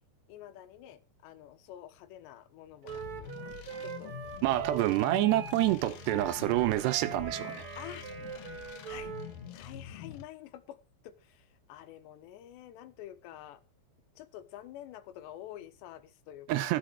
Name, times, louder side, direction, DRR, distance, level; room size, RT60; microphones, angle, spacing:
voice 1, 0.3-3.4 3.8-4.1 4.5-4.6 7.8-8.1 8.9-9.1 9.5-10.8 11.0-13.6 14.2-16.8, left 12 dB, 85° left, 3.2 m, -48 dB
Wind instrument woodwind instrument, 2.8-9.3, right 7 dB, 50° right, 2.4 m, -42 dB
sound 1, 2.9-10.2, left 10 dB, 70° left, 2.3 m, -46 dB
voice 2, 4.4-7.6 16.5-16.8, right 15 dB, 80° right, 2.8 m, -27 dB
Wind instrument woodwind instrument 2, 5.9-10.1, right 2 dB, 15° right, 4.1 m, -51 dB
15.5 x 7.2 x 4.8 m
omnidirectional pair, 5.0 m